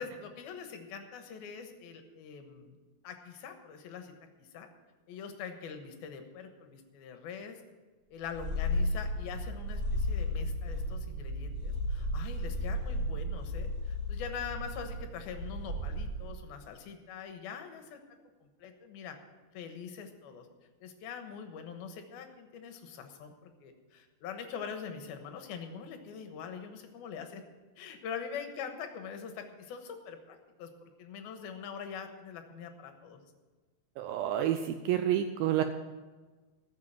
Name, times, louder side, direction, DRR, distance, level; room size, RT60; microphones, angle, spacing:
voice 1, 0.0-2.8 3.0-4.7 5.1-7.6 8.1-18.0 18.4-19.2 19.5-20.5 20.8-27.4 27.8-30.7 31.0-33.2, left 6 dB, 75° left, 6 dB, 2.9 m, -43 dB
Purr, 8.3-16.3, left 1 dB, 35° right, 6.0 m, -34 dB
voice 2, 34.0-35.6, right 11 dB, 80° right, 8 dB, 2.1 m, -29 dB
14.5 x 7.3 x 7.5 m, 1.3 s
omnidirectional pair, 4.7 m